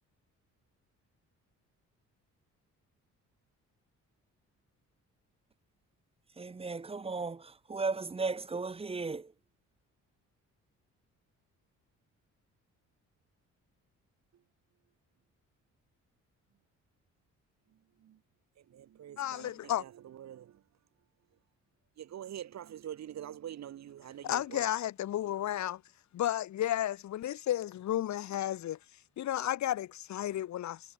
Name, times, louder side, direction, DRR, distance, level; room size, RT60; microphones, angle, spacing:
voice 1, 6.4-9.3, right 4 dB, 20° right, 0.8 m, -35 dB
voice 2, 18.6-20.6 22.0-24.7, right 10 dB, 60° right, 1.8 m, -45 dB
voice 3, 19.2-19.8 24.2-25.8 26.1-28.8 29.2-30.9, left 12 dB, 65° left, 1.3 m, -33 dB
cardioid pair, 90°, 30 cm